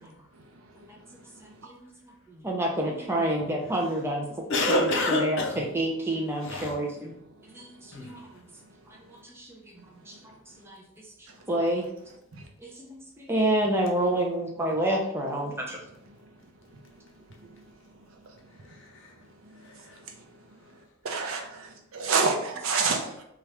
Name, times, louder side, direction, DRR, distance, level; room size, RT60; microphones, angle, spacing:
voice 1, 2.0-4.3 4.7-4.9 5.2-7.1 7.5-8.2 8.9-9.7 10.1-10.2 10.6-10.8 11.5-11.9 12.6-15.8 22.9-23.0, right 1 dB, 10° right, 0 dB, 0.4 m, -28 dB
voice 2, 4.5-5.6 6.4-6.8 7.9-8.2 18.7-19.1 19.6-20.0, left 1 dB, 55° left, 0 dB, 0.6 m, -28 dB
voice 3, 21.0-23.2, right 4 dB, 65° right, 3 dB, 0.5 m, -27 dB
2.8 x 2.4 x 3.2 m, 0.76 s
head